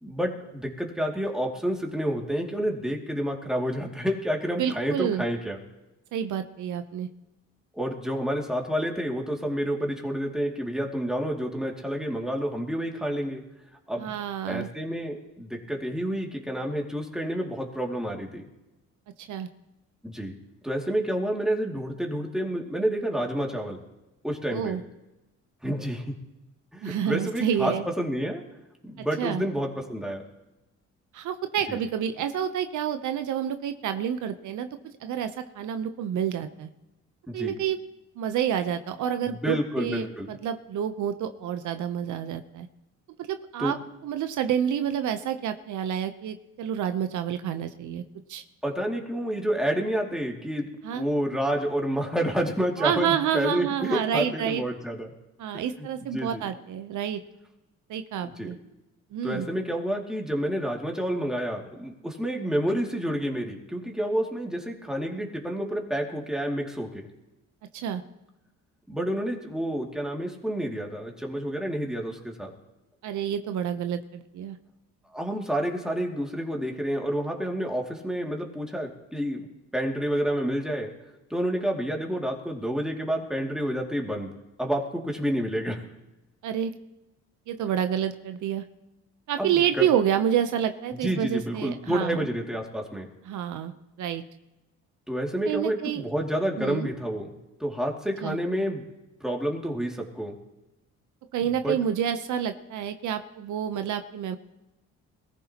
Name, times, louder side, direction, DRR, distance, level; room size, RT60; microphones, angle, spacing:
voice 1, 0.0-5.6 7.7-13.4 13.9-14.1 14.5-18.4 20.0-20.3 20.6-23.8 24.2-24.8 25.6-26.1 26.7-28.4 28.8-30.2 31.7-31.8 37.3-37.5 39.2-40.3 43.6-43.7 48.6-55.1 55.5-55.9 56.1-56.4 58.2-58.5 59.2-67.1 68.9-72.5 75.1-79.4 79.7-80.9 81.3-84.3 84.6-85.8 89.4-89.8 90.9-93.1 95.1-97.3 97.6-98.8 99.2-100.3 101.6-101.8, equal, ahead, 0 dB, 2.5 m, -29 dB
voice 2, 4.6-5.2 6.1-7.1 14.0-14.7 19.2-19.5 24.5-24.8 26.8-27.8 29.0-29.4 31.1-36.7 37.3-37.8 38.2-42.7 43.2-43.8 44.0-48.0 48.3-48.4 50.8-51.0 52.8-54.6 55.4-57.2 57.9-58.6 59.1-59.5 67.7-68.0 73.0-74.6 86.4-86.7 87.5-88.6 89.3-92.3 93.3-93.7 94.0-94.2 95.5-96.0 96.6-96.9 98.2-98.4 101.3-104.4, right 9 dB, 75° right, 9 dB, 0.8 m, -28 dB
21.5 x 14.5 x 3.0 m, 1.0 s
cardioid pair, 90°, 30 cm